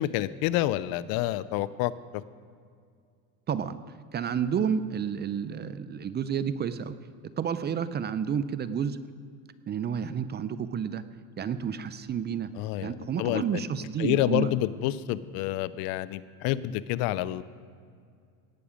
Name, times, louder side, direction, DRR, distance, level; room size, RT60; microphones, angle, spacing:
voice 1, 0.0-1.9 12.6-13.6 14.0-17.4, left 14 dB, 60° left, 17 dB, 0.6 m, -28 dB
voice 2, 3.5-3.8 4.1-6.9 7.4-9.0 9.7-11.1 11.4-12.5 12.8-14.5, right 7 dB, 25° right, 13 dB, 0.5 m, -30 dB
17.5 x 8.3 x 5.1 m, 2.2 s
supercardioid pair, 105°, 40 cm